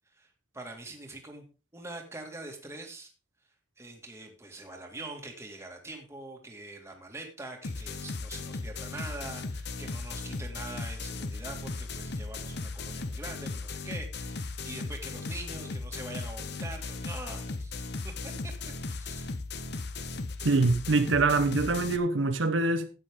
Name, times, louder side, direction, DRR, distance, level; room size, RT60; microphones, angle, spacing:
voice 1, 0.5-1.4 1.7-3.1 3.8-17.7 18.0-18.5 18.9-19.3, right 2 dB, 15° right, 2.2 m, -44 dB
sound 1, 7.6-22.0, left 3 dB, 55° left, 0.9 m, -37 dB
voice 2, 20.4-22.9, right 3 dB, 75° right, 1.0 m, -24 dB
13.0 x 8.9 x 3.7 m
head